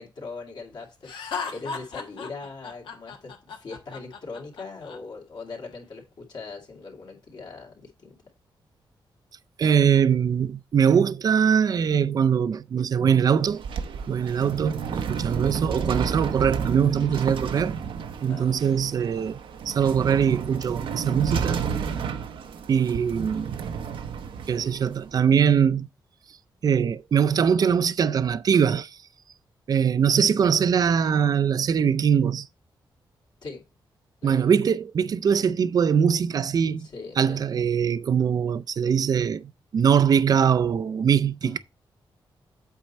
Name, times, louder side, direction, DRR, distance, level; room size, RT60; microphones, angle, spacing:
voice 1, 0.0-8.2 18.3-18.8 33.4-33.6 34.2-34.5 36.8-37.5 41.4-41.6, left 4 dB, 60° left, 2.3 m, -40 dB
Laughter, 1.0-5.0, left 5 dB, 80° left, 1.3 m, -35 dB
voice 2, 9.6-13.6 14.1-17.8 18.2-19.4 19.7-21.7 22.7-23.5 24.5-25.9 26.6-28.9 29.7-32.5 34.2-36.9 37.2-41.6, right 7 dB, 50° right, 0.4 m, -22 dB
sound 1, 13.3-25.2, right 6 dB, 85° right, 0.8 m, -31 dB
8.1 x 4.4 x 4.2 m
wide cardioid pair, 120°, 9 cm